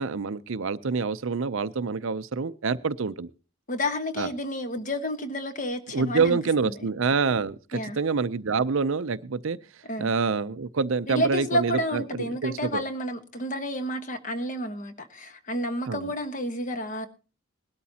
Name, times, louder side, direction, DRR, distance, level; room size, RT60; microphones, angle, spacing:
voice 1, 0.0-3.3 4.2-4.3 5.9-9.6 10.0-12.8 15.9-16.1, right 4 dB, 60° right, 14 dB, 0.5 m, -27 dB
voice 2, 3.7-6.4 6.6-6.9 7.7-8.0 9.9-10.1 11.1-17.1, equal, 35° left, 9 dB, 1.2 m, -30 dB
20.5 x 12.5 x 2.8 m, 0.33 s
head